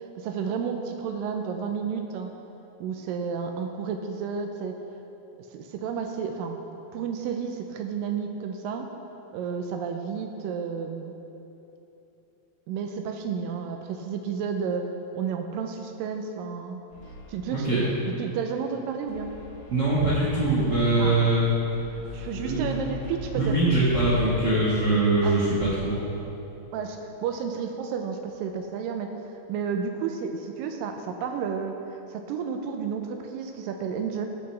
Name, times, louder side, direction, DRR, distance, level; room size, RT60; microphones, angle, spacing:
voice 1, 0.2-2.3 2.8-4.8 5.5-6.6 6.9-8.9 9.3-11.1 12.7-16.8 17.3-19.3 21.0-21.1 22.1-23.6 25.2-25.4 26.7-29.1 29.5-34.3, right 6 dB, 80° right, 5 dB, 2.2 m, -31 dB
sound 1, 16.9-17.6 19.1-24.6, left 2 dB, 55° left, 1.6 m, -41 dB
voice 2, 19.7-21.4 22.4-22.6 23.4-26.0, right 2 dB, 55° right, -9 dB, 1.2 m, -22 dB
16.0 x 7.0 x 3.3 m, 3.0 s
omnidirectional pair, 4.3 m